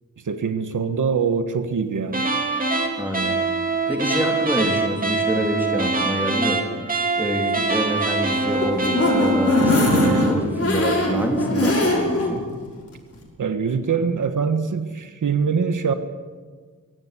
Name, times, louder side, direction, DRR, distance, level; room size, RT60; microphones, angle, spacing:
voice 1, 0.2-2.3 13.4-15.9, right 6 dB, 80° right, 9 dB, 1.5 m, -23 dB
sound 1, 2.1-10.4, right 3 dB, 25° right, 2.6 m, -24 dB
voice 2, 3.0-3.4 3.9-6.6 7.2-12.5, equal, 5° right, 2 dB, 3.1 m, -26 dB
sound 2, 8.3-12.3 12.7-12.8 13.1-13.2, left 1 dB, 50° left, 6.0 m, -21 dB
23.5 x 17.0 x 8.4 m, 1.5 s
wide cardioid pair, 150°, 31 cm